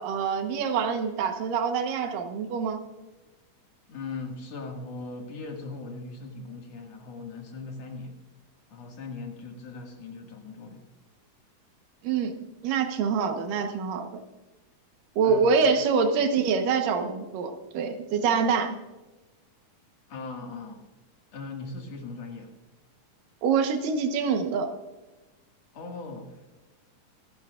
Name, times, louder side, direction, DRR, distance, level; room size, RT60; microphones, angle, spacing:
voice 1, 0.0-2.8 12.0-12.3 12.6-14.1 15.2-18.8 23.4-24.7, right 5 dB, 85° right, 6 dB, 2.9 m, -25 dB
voice 2, 3.9-8.2 8.7-10.9 15.2-15.7 20.1-20.9 21.3-22.5 25.7-26.5, left 3 dB, 55° left, 2 dB, 2.9 m, -39 dB
25.5 x 10.5 x 2.5 m, 1.2 s
omnidirectional pair, 3.8 m